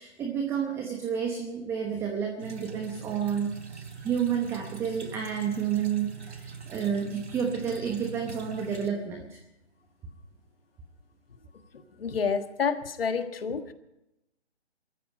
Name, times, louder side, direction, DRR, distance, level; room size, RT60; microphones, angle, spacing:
voice 1, 0.0-9.4, right 7 dB, 5° right, 3 dB, 0.8 m, -30 dB
sound 1, 2.4-8.9, right 6 dB, 80° right, 3.3 m, -43 dB
voice 2, 12.0-13.7, left 6 dB, 55° left, 9 dB, 1.7 m, -29 dB
20.0 x 14.0 x 5.2 m, 0.89 s
figure-of-eight pair, 145°, 34 cm